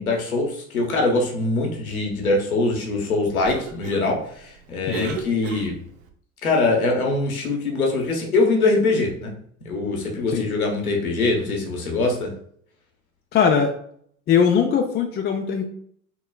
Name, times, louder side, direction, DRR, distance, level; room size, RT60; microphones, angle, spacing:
voice 1, 0.0-5.8 6.4-9.3 9.6-12.3, left 3 dB, 85° left, 1 dB, 1.1 m, -23 dB
Cough, 3.2-6.1, right 6 dB, 65° right, 0.8 m, -37 dB
voice 2, 4.9-5.2 10.3-10.5 13.3-13.7 14.3-15.7, left 7 dB, 25° left, 3 dB, 0.5 m, -20 dB
5.8 x 3.0 x 2.3 m, 0.63 s
figure-of-eight pair, 75°, 42 cm